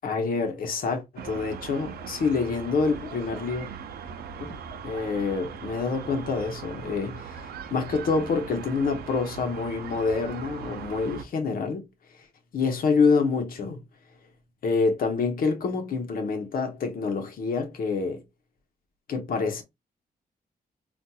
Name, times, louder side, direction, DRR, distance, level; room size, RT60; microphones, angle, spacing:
voice 1, 0.0-3.7 4.4-4.6 4.8-11.9 12.5-13.8 14.6-18.2 19.1-19.6, left 4 dB, 65° left, 1.0 m, -27 dB
sound 1, 1.2-11.2, right 7 dB, 80° right, 0.5 m, -40 dB
4.1 x 2.5 x 2.3 m
cardioid pair, 125°, 16 cm